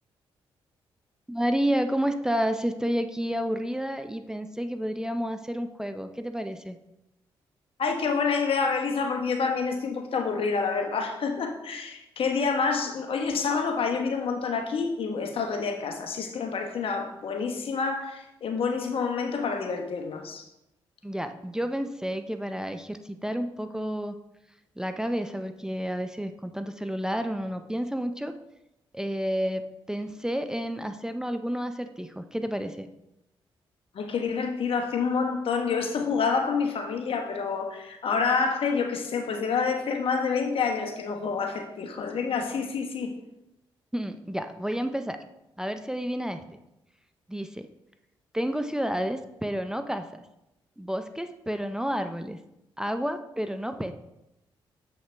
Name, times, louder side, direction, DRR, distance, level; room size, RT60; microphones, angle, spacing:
voice 1, 1.3-6.8 21.0-24.2 24.8-28.3 28.9-32.9 43.9-45.2 45.6-46.4 47.3-47.7 48.3-50.2 50.8-52.4 52.8-53.9, equal, 5° right, 8 dB, 0.5 m, -30 dB
voice 2, 7.8-20.4 33.9-43.2, left 5 dB, 65° left, 4 dB, 1.1 m, -28 dB
7.4 x 5.6 x 3.4 m, 0.88 s
supercardioid pair, 50°, 10 cm